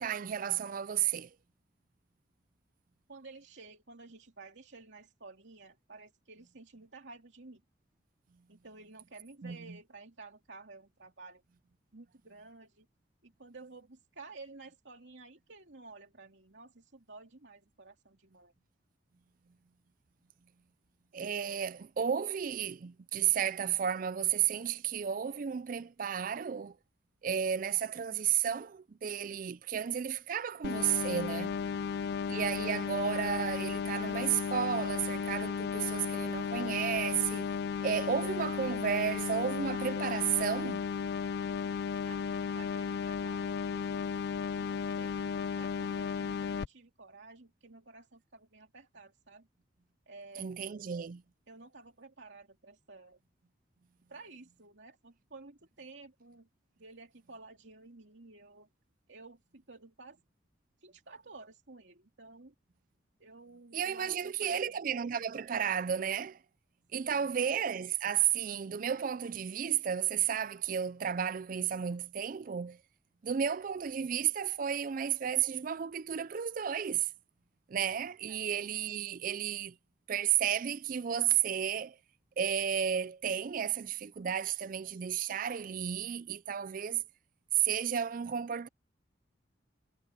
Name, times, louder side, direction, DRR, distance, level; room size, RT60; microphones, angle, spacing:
voice 1, 0.0-1.3 9.4-9.6 21.1-26.8 27.2-31.5 32.3-37.5 37.8-40.8 50.4-51.2 63.7-66.4 66.9-72.8 73.2-77.1 77.7-79.7 80.1-82.0 82.4-87.0 87.6-88.7, right 8 dB, 50° right, 0.4 m, -32 dB
voice 2, 3.1-7.6 8.5-11.4 11.9-12.9 13.2-18.5 31.6-32.2 42.0-44.1 44.6-49.5 50.1-50.8 51.5-53.2 54.1-56.5 56.8-58.7 59.1-60.2 60.8-62.5 63.2-64.7 67.1-67.5 78.3-78.5, right 3 dB, 75° right, 2.6 m, -53 dB
sound 1, 30.6-46.6, left 6 dB, 60° left, 0.3 m, -34 dB
head